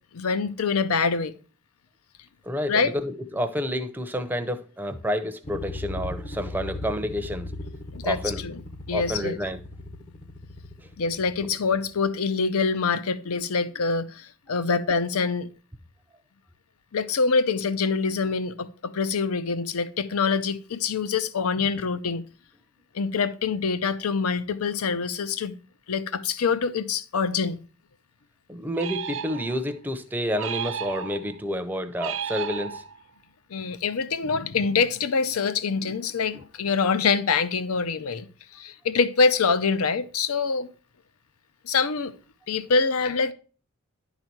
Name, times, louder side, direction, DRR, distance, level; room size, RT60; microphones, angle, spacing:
voice 1, 0.1-1.3 2.7-2.9 7.9-8.2 8.4-8.5 8.9-9.4 11.0-15.5 16.9-22.2 22.9-25.5 25.9-27.6 33.5-38.3 38.5-40.7 41.6-42.1 42.5-43.3, left 5 dB, 85° left, 0.6 m, -25 dB
voice 2, 2.4-7.5 8.0-8.5 8.9-9.6 21.6-21.8 28.5-32.8 36.3-36.4, equal, 10° right, 0.5 m, -29 dB
sound 1, 5.4-12.1, left 2 dB, 35° left, 0.7 m, -38 dB
sound 2, 28.7-29.8 30.4-31.4 32.0-33.2, right 7 dB, 60° right, 0.4 m, -33 dB
10.5 x 4.1 x 4.5 m
head